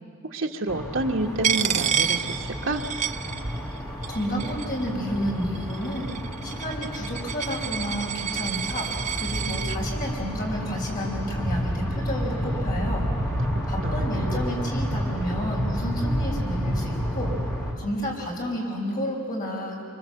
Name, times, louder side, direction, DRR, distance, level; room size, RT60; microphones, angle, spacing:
voice 1, 0.3-2.8 13.8-14.3, right 2 dB, 70° right, 2 dB, 1.6 m, -29 dB
sound 1, 0.7-17.7, equal, 15° left, 2.6 m, -30 dB
Coin (dropping), 1.4-3.8 4.0-4.9 5.6-9.8, right 8 dB, 35° right, 0.5 m, -29 dB
voice 2, 4.1-6.1 6.4-8.9 9.1-13.0 13.7-17.3 17.8-19.8, equal, 40° left, -2 dB, 5.1 m, -31 dB
24.5 x 24.5 x 7.9 m, 3.0 s
head